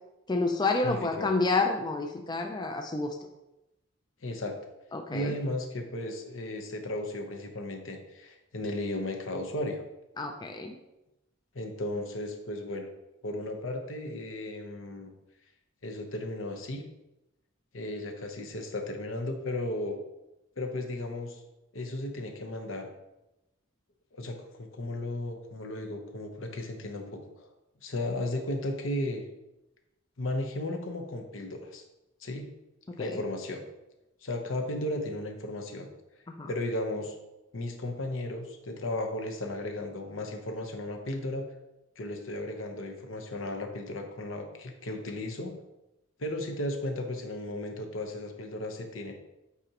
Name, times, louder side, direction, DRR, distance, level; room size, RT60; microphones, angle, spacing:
voice 1, 0.3-3.2 4.9-5.3 10.2-10.8 33.0-33.2 36.3-36.5, left 3 dB, 20° left, 4 dB, 0.4 m, -29 dB
voice 2, 0.8-1.3 4.2-4.6 5.1-9.8 11.5-12.9 13.2-15.1 15.8-16.8 17.7-20.0 20.6-21.4 21.7-22.9 24.1-27.5 27.8-29.2 30.2-31.8 32.2-32.5 33.0-33.6 34.2-35.9 36.5-37.1 37.5-41.5 42.0-45.5 46.2-49.1, left 1 dB, 70° left, 5 dB, 0.9 m, -35 dB
8.3 x 4.8 x 2.9 m, 0.95 s
head